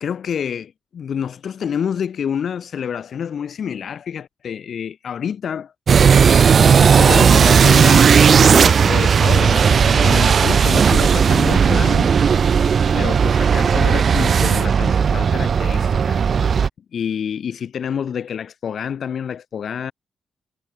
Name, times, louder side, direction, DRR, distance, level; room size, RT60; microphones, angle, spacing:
voice 1, 0.0-5.7 6.4-12.1 12.9-16.2 16.9-19.9, left 8 dB, 65° left, 1.7 m, -27 dB
sound 1, 5.9-16.7, right 6 dB, 55° right, 1.1 m, -14 dB
cardioid pair, 90°, 0 cm